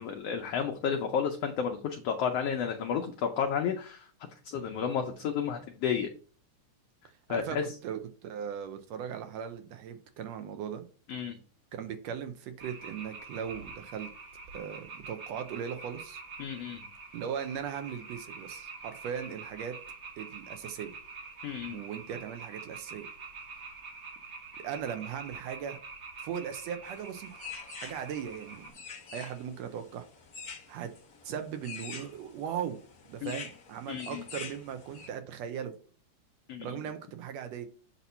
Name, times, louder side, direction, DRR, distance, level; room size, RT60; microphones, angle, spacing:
voice 1, 0.0-4.1 4.4-6.1 7.3-7.6 11.1-11.4 16.4-16.8 21.4-21.8 33.2-33.3 33.9-34.2 36.5-36.8, left 7 dB, 75° left, 3 dB, 1.4 m, -32 dB
voice 2, 7.8-10.8 11.7-14.1 14.5-16.2 17.1-19.8 20.2-20.9 21.7-23.1 24.6-25.8 26.2-27.3 27.8-28.7 29.1-30.0 30.7-30.9 31.2-32.8 33.1-35.7 36.6-37.7, right 8 dB, 75° right, 8 dB, 1.6 m, -38 dB
sound 1, 12.6-28.7, right 4 dB, 45° right, 1.4 m, -46 dB
sound 2, 26.8-35.1, left 5 dB, 60° left, 0.9 m, -46 dB
8.1 x 2.9 x 5.6 m, 0.39 s
omnidirectional pair, 3.6 m